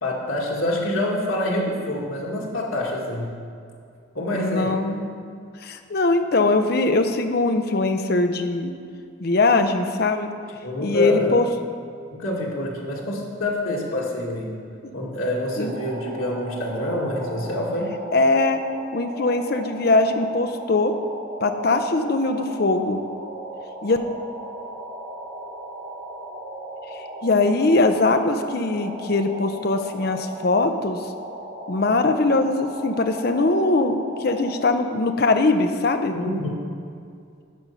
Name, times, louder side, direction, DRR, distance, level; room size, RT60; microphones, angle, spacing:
voice 1, 0.0-3.3 4.1-4.7 10.6-11.3 12.1-14.5 14.9-17.9 36.1-36.5, left 1 dB, 90° left, -3 dB, 1.9 m, -26 dB
voice 2, 4.3-5.1 5.6-8.7 9.2-10.3 10.8-11.5 15.6-15.8 18.1-18.6 18.9-20.9 21.4-23.0 23.8-24.0 26.9-31.1 31.7-36.1, left 3 dB, 50° left, 7 dB, 0.6 m, -21 dB
sound 1, 15.5-34.7, right 1 dB, 65° right, 2.0 m, -37 dB
10.5 x 5.2 x 5.7 m, 2.3 s
head